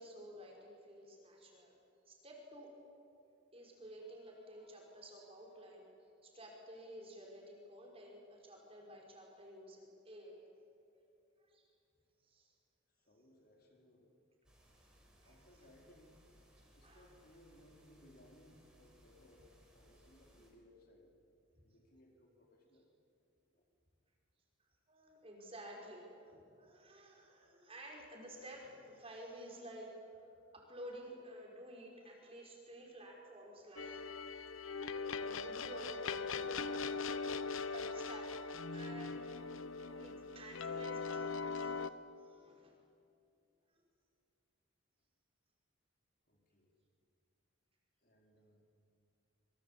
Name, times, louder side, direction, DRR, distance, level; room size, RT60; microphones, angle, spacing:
voice 1, 0.0-1.7 2.1-2.7 3.5-5.9 6.2-10.5 10.9-11.0 11.5-11.7 12.2-12.5 14.8-14.9 15.2-15.4 16.6-17.1 24.9-29.9 30.2-34.1 34.8-39.4 39.8-42.7, right 1 dB, 30° right, -1 dB, 5.5 m, -53 dB
voice 2, 12.9-14.1 15.2-16.2 16.7-21.1 21.6-22.9 23.5-23.6 46.3-46.7 48.0-48.7, left 1 dB, 45° left, 0 dB, 4.6 m, -64 dB
sound 1, 14.4-20.5, equal, 5° right, 5.5 m, -66 dB
sound 2, 33.8-41.9, left 4 dB, 75° left, 0.9 m, -41 dB
27.5 x 25.0 x 8.5 m, 2.6 s
head